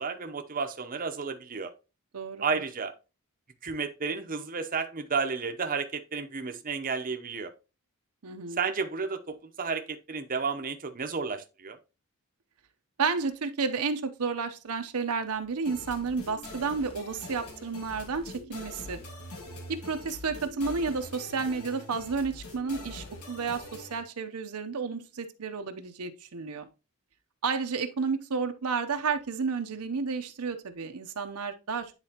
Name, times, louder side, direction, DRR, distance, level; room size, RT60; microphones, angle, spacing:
voice 1, 0.0-1.7 2.4-2.9 3.6-7.5 8.6-11.8, right 5 dB, 40° right, 0.7 m, -32 dB
voice 2, 2.1-2.4 8.2-8.6 13.0-19.0 19.7-26.7 27.4-31.9, right 5 dB, 85° right, 0.8 m, -31 dB
sound 1, 15.6-24.0, left 2 dB, 80° left, 1.9 m, -44 dB
9.7 x 4.0 x 2.9 m
head